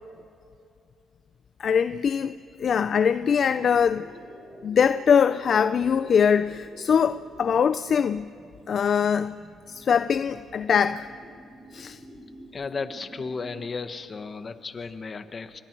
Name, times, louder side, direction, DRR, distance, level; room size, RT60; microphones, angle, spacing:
voice 1, 1.6-2.3 2.6-4.1 4.6-8.3 8.7-9.4 9.7-11.1 11.7-12.0, left 7 dB, 55° left, 0.5 m, -22 dB
sound 1, 3.2-13.7, equal, ahead, 7.6 m, -49 dB
voice 2, 12.5-15.6, left 4 dB, 35° left, 1.3 m, -34 dB
28.5 x 23.5 x 4.7 m
cardioid pair, 90°, 0 cm